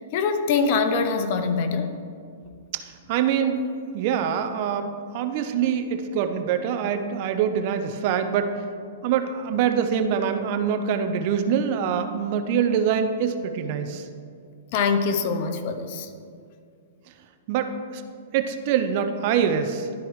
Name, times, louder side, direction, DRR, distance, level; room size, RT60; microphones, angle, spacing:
voice 1, 0.1-1.9 14.7-16.1, left 5 dB, 50° left, 8 dB, 0.6 m, -23 dB
voice 2, 2.7-3.6 3.9-8.6 9.0-14.1 17.5-18.0 18.3-19.9, right 8 dB, 50° right, 7 dB, 0.6 m, -24 dB
11.5 x 4.6 x 3.1 m, 2.3 s
hypercardioid pair, 130°, 0 cm